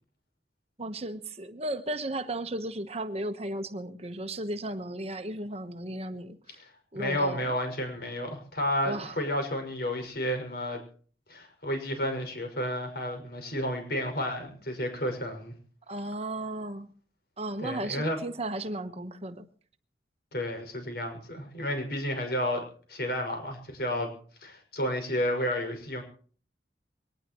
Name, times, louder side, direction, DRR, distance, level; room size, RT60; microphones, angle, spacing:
voice 1, 0.8-6.6 6.9-7.5 8.8-9.2 15.9-16.9 17.4-19.4, right 1 dB, 35° right, 8 dB, 1.2 m, -35 dB
voice 2, 6.6-10.8 11.3-15.5 17.6-18.2 20.3-22.6 22.9-24.1 24.4-26.0, equal, 60° left, 5 dB, 6.0 m, -31 dB
23.0 x 19.0 x 3.1 m, 0.44 s
head